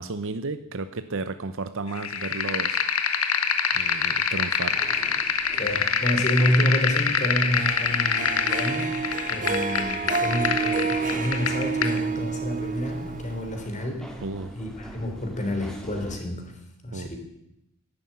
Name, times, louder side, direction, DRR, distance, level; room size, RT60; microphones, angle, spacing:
voice 1, 0.0-2.8 3.7-4.8 14.2-14.5 16.9-17.1, right 3 dB, 65° right, 11 dB, 0.8 m, -33 dB
sound 1, 1.9-12.0, left 6 dB, 90° left, 1.6 m, -26 dB
sound 2, 4.6-16.2, equal, 5° left, 2.2 m, -44 dB
voice 2, 5.5-14.1 14.5-16.6 16.8-17.2, left 1 dB, 35° left, 4 dB, 3.5 m, -28 dB
Harp, 7.5-13.8, right 5 dB, 40° right, 0.8 m, -29 dB
11.5 x 11.5 x 9.5 m, 0.84 s
head